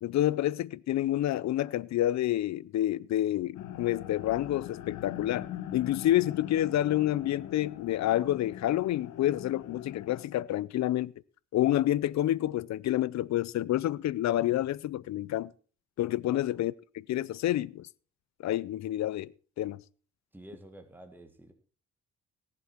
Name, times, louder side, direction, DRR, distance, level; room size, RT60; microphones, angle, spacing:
voice 1, 0.0-11.1 11.5-15.5 16.0-17.9 18.4-19.3 19.6-19.8, left 13 dB, 65° left, 0.6 m, -28 dB
sound 1, 3.5-10.3, left 11 dB, 90° left, 1.2 m, -42 dB
voice 2, 16.3-16.6 17.3-17.4 20.3-21.5, right 1 dB, 5° right, 1.8 m, -50 dB
18.0 x 7.7 x 4.4 m
cardioid pair, 90°, 30 cm